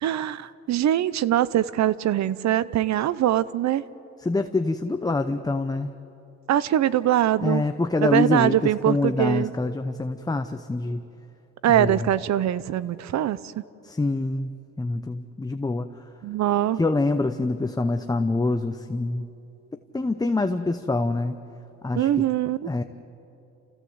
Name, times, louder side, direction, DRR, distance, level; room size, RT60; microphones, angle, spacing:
voice 1, 0.0-3.8 6.5-7.6 8.0-9.5 11.6-13.5 16.2-16.8 21.9-22.7, right 12 dB, 65° right, 18 dB, 0.7 m, -23 dB
voice 2, 4.2-5.9 7.4-11.1 11.7-12.1 13.8-14.5 14.8-16.0 16.7-19.3 19.9-21.4 21.8-22.3 22.7-22.8, left 2 dB, 15° left, 7 dB, 0.7 m, -25 dB
29.5 x 15.5 x 7.9 m, 2.8 s
cardioid pair, 90°, 30 cm